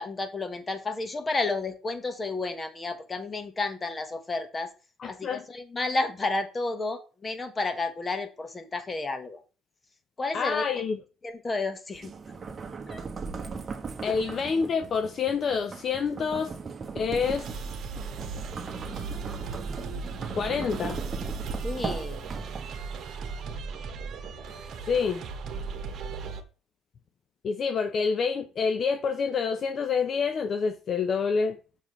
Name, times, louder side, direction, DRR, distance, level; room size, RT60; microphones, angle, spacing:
voice 1, 0.0-4.7 5.1-9.4 10.2-10.6 11.2-12.1 12.9-13.0 13.4-13.5 14.1-14.2 21.6-22.3, left 3 dB, 25° left, 1.5 m, -31 dB
voice 2, 5.0-5.4 10.3-11.0 14.0-16.5 16.9-17.5 20.3-21.0 24.8-25.2 27.4-31.6, left 5 dB, 50° left, 0.8 m, -27 dB
sound 1, 11.9-22.9, right 4 dB, 30° right, 1.3 m, -38 dB
sound 2, 17.2-26.4, right 5 dB, 55° right, 1.4 m, -37 dB
7.3 x 6.4 x 3.3 m
supercardioid pair, 90°, 0 cm